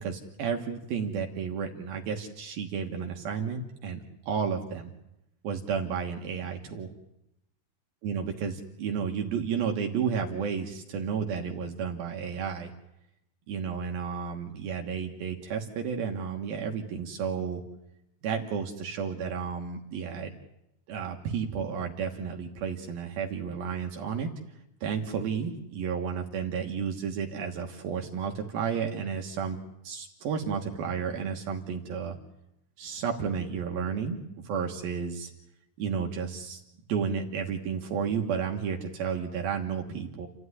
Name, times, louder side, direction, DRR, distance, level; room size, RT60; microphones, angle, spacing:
voice 1, 0.0-4.9 5.4-6.9 8.0-12.7 13.5-17.6 18.2-20.3 20.9-24.3 24.8-29.6 29.8-32.2 32.8-34.2 34.4-35.3 35.8-36.6 36.9-40.3, right 6 dB, 65° right, 2 dB, 2.9 m, -32 dB
29.5 x 14.0 x 9.8 m, 0.86 s
omnidirectional pair, 4.9 m